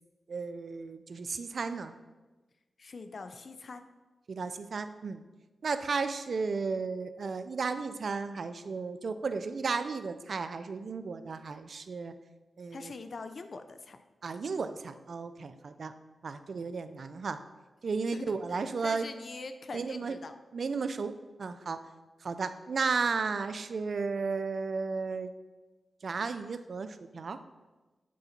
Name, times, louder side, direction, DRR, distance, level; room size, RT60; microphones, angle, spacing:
voice 1, 0.3-1.9 4.3-5.2 5.6-12.1 12.6-12.9 14.2-15.9 16.2-17.4 17.8-19.1 19.7-20.1 20.5-21.8 22.2-25.3 26.0-27.4, right 4 dB, 65° right, 11 dB, 0.5 m, -34 dB
voice 2, 2.8-3.8 12.7-14.0 18.1-18.4 18.8-20.4, left 4 dB, 65° left, 9 dB, 0.6 m, -43 dB
8.4 x 3.8 x 5.8 m, 1.2 s
cardioid pair, 45°, 0 cm